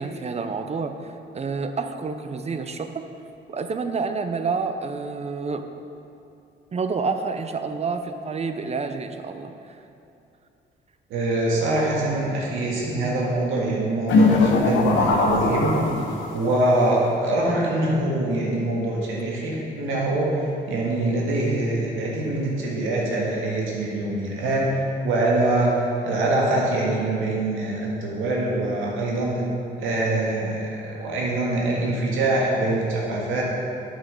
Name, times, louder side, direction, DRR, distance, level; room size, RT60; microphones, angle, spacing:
voice 1, 0.0-3.0 3.5-5.6 6.7-9.5, right 4 dB, 35° right, 8 dB, 0.6 m, -28 dB
voice 2, 11.1-15.7 16.3-29.5 29.8-33.4, right 2 dB, 90° right, -3 dB, 1.8 m, -24 dB
sound 1, 14.1-16.5, left 3 dB, 75° left, 1.1 m, -20 dB
7.9 x 6.4 x 5.3 m, 2.7 s
cardioid pair, 90°, 20 cm